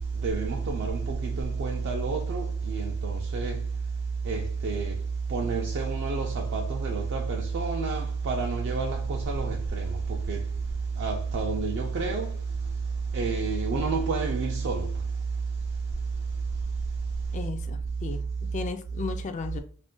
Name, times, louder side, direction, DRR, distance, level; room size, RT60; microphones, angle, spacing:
voice 1, 0.2-3.6 4.3-5.0 5.3-10.4 11.0-12.3 13.1-14.9, right 4 dB, 55° right, 0.4 m, -29 dB
voice 2, 17.3-19.6, left 5 dB, 35° left, 0.3 m, -35 dB
2.4 x 2.1 x 3.7 m
head